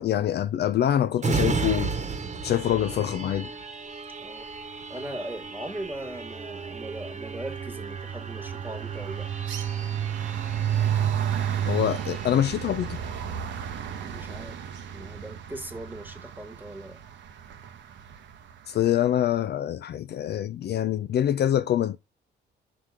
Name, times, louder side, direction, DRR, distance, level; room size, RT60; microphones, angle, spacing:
voice 1, 0.0-1.9 2.4-3.5 11.6-13.0 18.7-22.0, left 11 dB, 55° left, 0.4 m, -25 dB
sound 1, 1.2-14.5 15.0-15.1, right 4 dB, 35° right, 1.2 m, -35 dB
voice 2, 4.2-9.3 14.0-17.0, right 1 dB, 10° right, 1.4 m, -39 dB
sound 2, 4.8-5.2 5.5-18.6, right 9 dB, 65° right, 0.9 m, -32 dB
5.9 x 4.7 x 3.6 m
cardioid pair, 90°, 20 cm